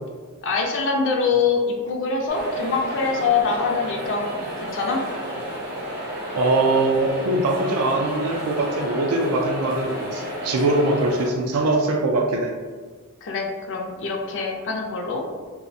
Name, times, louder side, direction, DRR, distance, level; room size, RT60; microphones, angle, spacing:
voice 1, 0.4-5.0 13.2-15.3, left 4 dB, 60° left, 2 dB, 0.4 m, -24 dB
sound 1, 2.3-11.3, equal, 45° right, 0.7 m, -31 dB
voice 2, 6.3-12.5, right 2 dB, 70° right, 1 dB, 0.3 m, -22 dB
2.4 x 2.1 x 2.5 m, 1.5 s
head